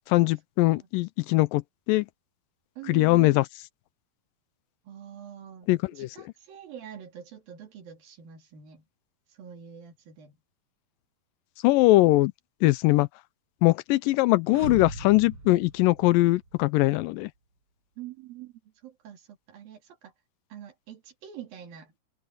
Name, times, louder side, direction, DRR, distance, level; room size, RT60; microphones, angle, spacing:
voice 1, 0.1-1.6 1.9-2.1 2.9-3.4 5.7-6.1 11.6-12.3 12.6-13.1 13.6-17.3, left 19 dB, 80° left, 2.2 m, -21 dB
voice 2, 2.8-3.4 4.8-8.9 9.3-10.4 18.0-20.1 20.5-21.9, right 10 dB, 80° right, 4.6 m, -45 dB
sound 1, 14.5-16.6, right 2 dB, 35° right, 8.4 m, -39 dB
open air
omnidirectional pair, 4.0 m